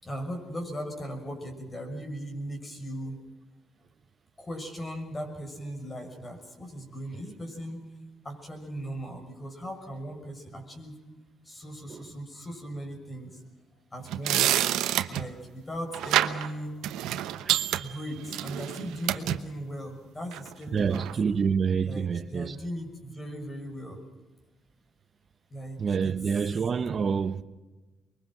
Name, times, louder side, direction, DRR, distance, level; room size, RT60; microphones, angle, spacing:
voice 1, 0.0-3.2 4.4-7.8 8.2-11.0 11.4-13.3 13.9-14.7 15.1-16.9 17.8-21.1 21.8-24.0 25.5-26.2, equal, 25° left, 6.3 m, -38 dB
sound 1, 14.0-15.3 15.9-16.5 16.8-19.4 20.3-20.5 20.9-21.1, right 13 dB, 90° right, 1.0 m, -28 dB
voice 2, 20.7-22.6 25.8-27.4, right 6 dB, 45° right, 0.9 m, -27 dB
24.0 x 22.0 x 6.3 m
cardioid pair, 90°, 0 cm